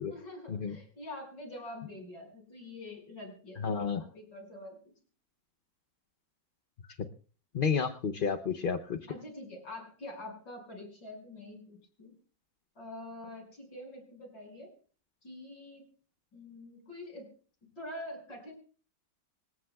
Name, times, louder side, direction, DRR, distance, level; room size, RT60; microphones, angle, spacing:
voice 1, 0.1-4.8 9.1-12.1 12.7-14.7 15.2-15.8 16.3-17.3 17.6-18.5, left 1 dB, 90° left, 2 dB, 6.7 m, -45 dB
voice 2, 3.6-4.0 7.5-9.0, left 6 dB, 55° left, 6 dB, 0.6 m, -30 dB
27.5 x 14.0 x 2.3 m, 0.40 s
omnidirectional pair, 1.9 m